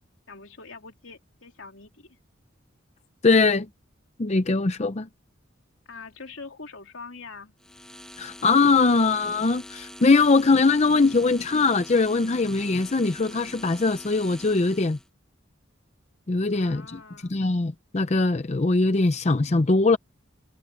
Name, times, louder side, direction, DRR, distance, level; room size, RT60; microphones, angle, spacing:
voice 1, 0.3-2.2 5.8-7.5 16.5-17.3, left 4 dB, 80° left, 3.0 m, -43 dB
voice 2, 3.2-3.7 4.2-5.1 8.2-15.0 16.3-17.0 17.3-20.0, left 3 dB, 35° left, 0.6 m, -21 dB
sound 1, 7.6-15.1, left 1 dB, 5° left, 1.3 m, -44 dB
head